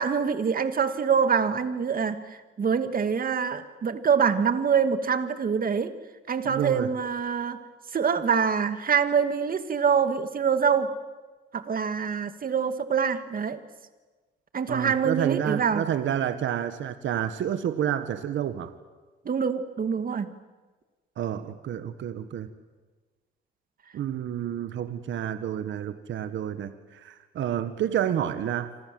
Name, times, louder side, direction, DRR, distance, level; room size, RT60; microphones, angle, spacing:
voice 1, 0.0-5.9 6.3-7.6 7.9-10.9 11.5-13.6 14.5-15.8 19.2-20.3, right 6 dB, 45° right, 9 dB, 2.4 m, -25 dB
voice 2, 6.4-6.9 14.7-18.7 21.2-22.5 23.9-28.7, right 10 dB, 70° right, 10 dB, 1.6 m, -29 dB
27.5 x 27.0 x 7.9 m, 1.3 s
cardioid pair, 90°, 20 cm